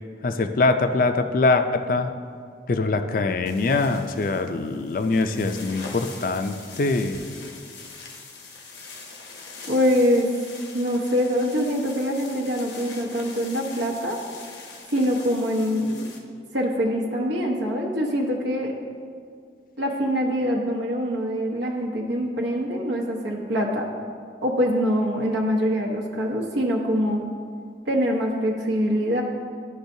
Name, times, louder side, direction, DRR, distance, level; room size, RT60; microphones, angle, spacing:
voice 1, 0.2-2.1 2.7-7.2, left 3 dB, 50° left, 8 dB, 0.4 m, -23 dB
sound 1, 3.5-16.2, left 3 dB, 80° left, 0.9 m, -42 dB
voice 2, 9.7-10.3 10.7-14.2 14.9-15.9 16.5-18.7 19.8-23.9 24.4-27.2 27.9-29.2, equal, 85° right, -2 dB, 0.9 m, -24 dB
12.0 x 5.4 x 2.7 m, 2.1 s
head